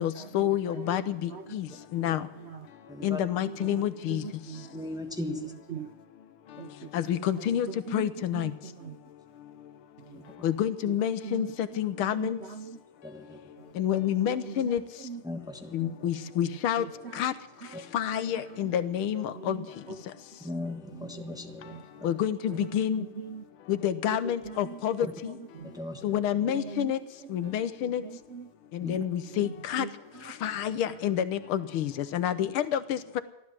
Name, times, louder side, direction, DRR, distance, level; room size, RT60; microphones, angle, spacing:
voice 1, 0.0-2.3 3.0-4.2 6.9-8.5 10.4-12.4 13.7-14.8 15.7-16.8 17.1-17.3 17.9-19.6 22.0-23.0 23.7-25.3 26.0-27.0 27.3-28.0 28.7-29.9 30.4-33.2, left 10 dB, 80° left, 13 dB, 1.7 m, -28 dB
voice 2, 2.9-3.2 4.7-5.5 10.1-10.2 13.0-13.4 15.2-15.8 20.4-21.8 25.0-25.1 25.6-26.2 28.8-29.0, left 2 dB, ahead, 3 dB, 1.0 m, -37 dB
voice 3, 3.5-4.6 5.3-5.9 6.6-6.7 7.5-8.1 8.3-8.5 8.8-8.9 10.9-11.5 11.7-11.9 12.2-12.7 14.2-14.5 15.0-15.2 15.8-15.9 16.2-16.9 18.6-18.7 19.2-20.0 20.9-21.1 22.6-22.8 23.2-23.4 24.1-24.2 24.5-24.8 25.6-25.7 26.3-26.9 27.4-27.5 27.8-28.5 29.3-29.5 29.8-29.9 30.9-31.0, right 5 dB, 85° right, 8 dB, 0.5 m, -40 dB
15.0 x 12.0 x 7.5 m, 0.93 s
omnidirectional pair, 2.4 m